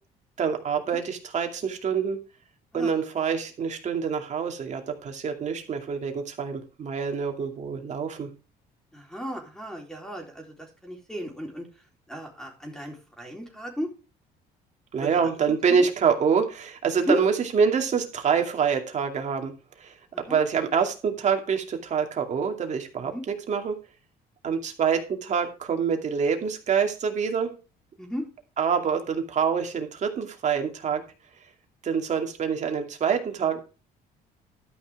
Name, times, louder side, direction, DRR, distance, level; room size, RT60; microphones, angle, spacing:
voice 1, 0.4-2.2 2.7-8.3 14.9-19.5 19.8-19.9 20.3-23.8 24.4-27.5 28.6-31.0 31.8-33.6, right 6 dB, 45° right, 4 dB, 2.5 m, -26 dB
voice 2, 8.9-10.5 10.8-11.7 12.1-13.9 15.0-15.1 15.5-15.9 17.1-17.3 20.3-20.4 23.0-23.2 28.0-28.3, equal, 5° left, 2 dB, 3.8 m, -33 dB
12.5 x 5.8 x 4.8 m, 0.33 s
cardioid pair, 110°, 17 cm